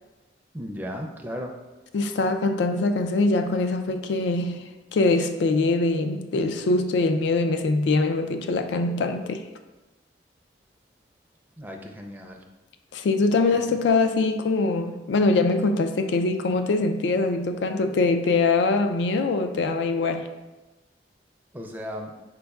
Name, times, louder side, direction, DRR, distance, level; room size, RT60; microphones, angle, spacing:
voice 1, 0.5-1.5 11.6-12.4 13.5-13.6 21.5-22.2, equal, 10° right, 2 dB, 0.4 m, -35 dB
voice 2, 1.9-9.4 12.9-20.3, left 3 dB, 80° left, 7 dB, 0.4 m, -23 dB
5.2 x 4.3 x 2.3 m, 1.1 s
head